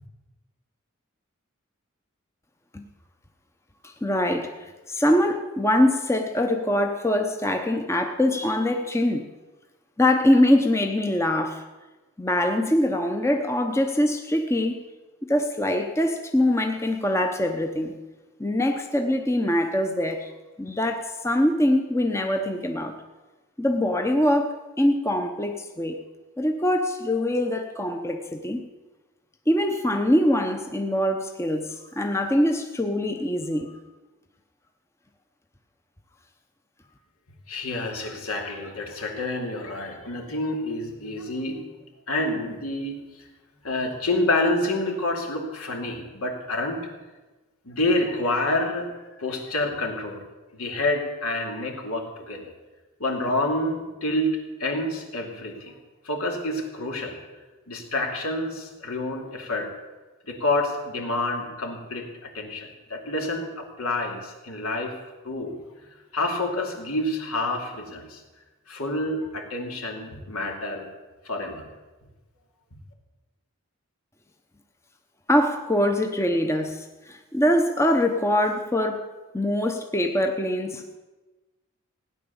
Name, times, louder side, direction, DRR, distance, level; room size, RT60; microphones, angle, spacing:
voice 1, 4.0-4.5 4.9-9.3 10.0-11.6 12.2-14.8 15.3-18.0 18.4-20.3 20.6-22.9 23.6-26.0 26.4-28.6 29.5-33.7 75.3-79.1 79.3-81.0, left 1 dB, 10° left, 5 dB, 0.8 m, -23 dB
voice 2, 37.5-41.7 42.1-43.0 43.6-46.8 47.6-50.2 50.5-52.5 53.0-55.7 56.0-57.2 57.7-59.7 60.3-65.0 65.2-65.6 66.1-68.2 68.7-70.9 71.2-71.7, left 2 dB, 80° left, 1 dB, 2.8 m, -28 dB
17.0 x 9.9 x 7.0 m, 1.2 s
head